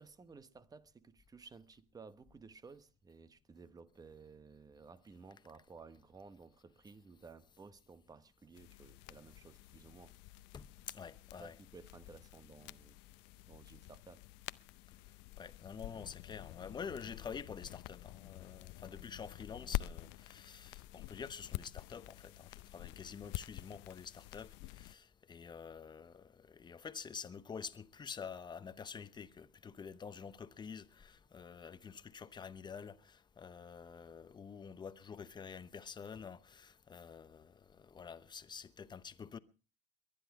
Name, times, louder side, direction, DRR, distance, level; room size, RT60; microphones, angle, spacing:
voice 1, 0.0-10.1 11.4-13.0 13.5-14.2, right 4 dB, 20° right, 1.0 m, -56 dB
sound 1, 8.5-24.9, left 18 dB, 70° left, 0.7 m, -47 dB
voice 2, 10.5-11.5 15.4-39.4, left 6 dB, 25° left, 0.9 m, -48 dB
22.5 x 10.5 x 4.7 m
cardioid pair, 125°, 20 cm